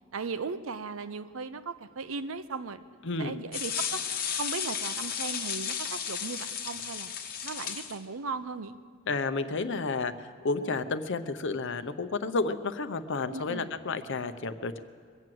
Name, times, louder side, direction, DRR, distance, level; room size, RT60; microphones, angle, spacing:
voice 1, 0.1-2.8 3.2-4.0 4.4-7.1 7.4-8.8 13.3-13.7, right 4 dB, 75° right, 12 dB, 0.7 m, -37 dB
voice 2, 3.0-3.4 9.1-10.1 10.4-14.8, left 3 dB, 60° left, 11 dB, 0.7 m, -31 dB
sound 1, 3.5-8.0, left 7 dB, 45° left, 1.0 m, -34 dB
22.5 x 7.7 x 7.7 m, 2.1 s
head